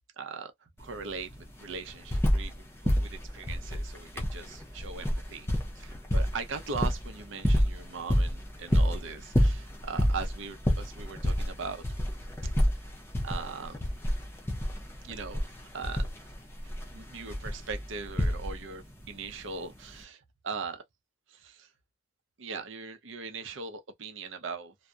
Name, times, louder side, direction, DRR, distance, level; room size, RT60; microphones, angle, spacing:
voice 1, 0.2-5.5 5.8-11.8 12.4-12.5 13.2-13.9 15.0-16.1 16.6-20.8 21.3-21.7 22.4-24.7, right 4 dB, 75° right, 0.6 m, -40 dB
sound 1, 0.8-0.9 1.1-2.6 2.8-18.8 19.9-20.0, equal, 10° left, 0.5 m, -29 dB
2.7 x 2.0 x 2.3 m
head